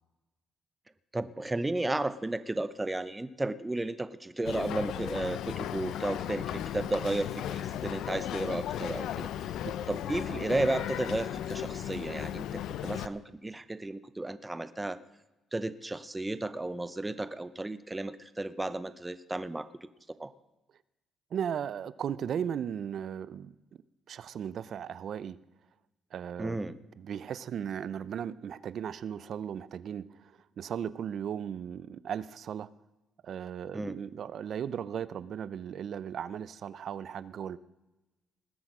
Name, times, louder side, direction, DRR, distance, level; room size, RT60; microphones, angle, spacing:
voice 1, 1.1-9.3 9.9-15.0 15.5-19.7 20.2-20.3 26.4-26.8 33.7-34.0, right 2 dB, 15° right, 14 dB, 0.7 m, -33 dB
Boat Water vehicle, 4.4-13.1, left 11 dB, 80° left, 0.6 m, -36 dB
voice 2, 21.3-23.5 24.1-25.4 26.1-32.7 33.2-37.6, right 8 dB, 65° right, 18 dB, 0.6 m, -36 dB
19.5 x 8.0 x 6.1 m, 1.0 s
cardioid pair, 90°, 0 cm